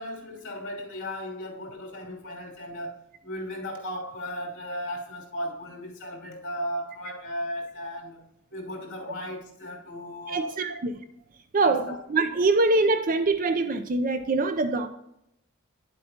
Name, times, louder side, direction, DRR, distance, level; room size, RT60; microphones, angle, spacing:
voice 1, 0.0-8.2 8.5-10.6 11.6-12.0, equal, 55° left, 2.9 m, -36 dB
voice 2, 10.3-10.9 11.5-11.8 12.1-14.9, right 3 dB, 40° right, 0.5 m, -23 dB
10.0 x 7.8 x 2.9 m
head